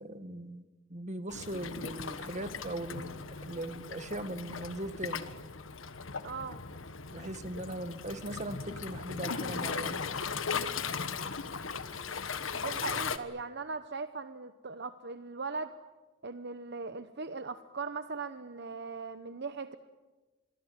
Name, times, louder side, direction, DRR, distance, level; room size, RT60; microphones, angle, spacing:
voice 1, 0.0-5.2 7.1-10.0, right 1 dB, 35° right, 10 dB, 1.8 m, -39 dB
Waves surf, 1.3-13.2, left 5 dB, 80° left, 1.4 m, -38 dB
voice 2, 6.2-6.6 12.5-15.7 16.2-19.8, right 4 dB, 60° right, 11 dB, 1.0 m, -39 dB
27.0 x 22.0 x 9.5 m, 1.2 s
head